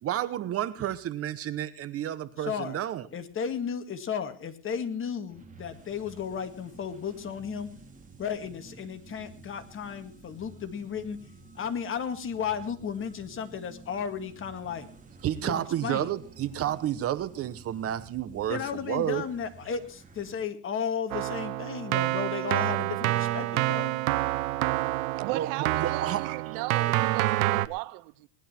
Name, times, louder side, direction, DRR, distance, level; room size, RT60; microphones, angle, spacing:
voice 1, 0.0-3.1 15.2-19.3 25.3-26.3, right 11 dB, 35° right, 1.0 m, -31 dB
voice 2, 2.4-2.8 3.1-7.7 8.2-11.2 11.6-14.9 15.4-16.1 18.5-23.9, left 7 dB, 30° left, 2.0 m, -34 dB
sound 1, 5.3-20.4, right 4 dB, 20° right, 3.0 m, -51 dB
Keyboard (musical), 21.1-27.7, right 16 dB, 85° right, 0.9 m, -28 dB
voice 3, 25.2-28.3, right 22 dB, 55° right, 0.7 m, -36 dB
19.5 x 11.5 x 4.4 m
supercardioid pair, 115°, 41 cm